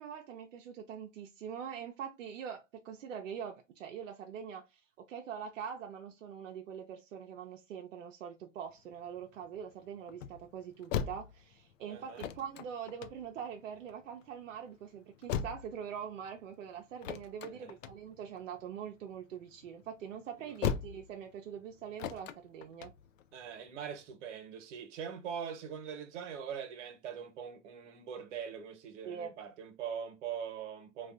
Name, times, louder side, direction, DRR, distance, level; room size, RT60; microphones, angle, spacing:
voice 1, 0.0-4.8 5.1-22.9 29.0-29.4, right 8 dB, 90° right, 0.6 m, -43 dB
sound 1, 8.6-24.1, left 8 dB, 85° left, 0.5 m, -42 dB
voice 2, 11.9-12.2 17.4-17.7 20.4-20.6 23.3-31.1, right 7 dB, 65° right, 1.0 m, -42 dB
3.3 x 2.4 x 2.4 m
hypercardioid pair, 135°, 37 cm